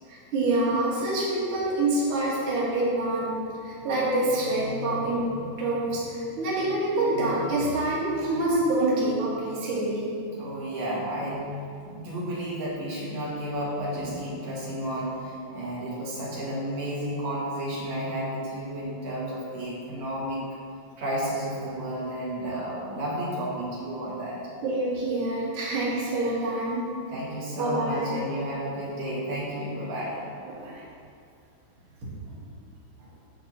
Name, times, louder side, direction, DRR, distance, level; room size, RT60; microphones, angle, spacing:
voice 1, 0.1-10.1 13.9-14.2 24.6-26.9 27.5-28.1 30.6-30.8, right 2 dB, 45° right, -7 dB, 2.0 m, -26 dB
voice 2, 10.3-11.5 11.8-20.4 21.0-24.4 27.1-30.2 32.2-32.3 33.0-33.1, right 1 dB, 65° right, -6 dB, 2.9 m, -32 dB
9.8 x 3.4 x 6.8 m, 2.5 s
omnidirectional pair, 3.5 m